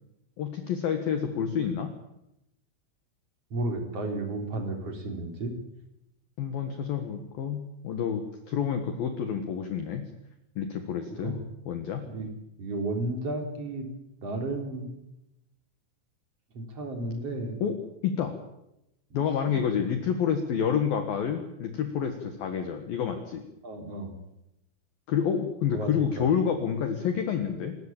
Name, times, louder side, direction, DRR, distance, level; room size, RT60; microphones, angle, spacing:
voice 1, 0.4-1.9 6.4-10.0 10.6-11.4 11.7-12.0 17.6-17.7 18.0-18.4 19.1-23.4 25.1-27.8, left 7 dB, 60° left, 6 dB, 2.7 m, -28 dB
voice 2, 3.5-5.5 11.1-11.4 12.1-12.3 12.6-13.9 14.2-14.9 16.5-17.6 19.1-19.5 23.6-24.1 25.7-26.3, right 2 dB, 35° right, 4 dB, 3.9 m, -33 dB
27.5 x 14.0 x 8.9 m, 0.88 s
omnidirectional pair, 5.9 m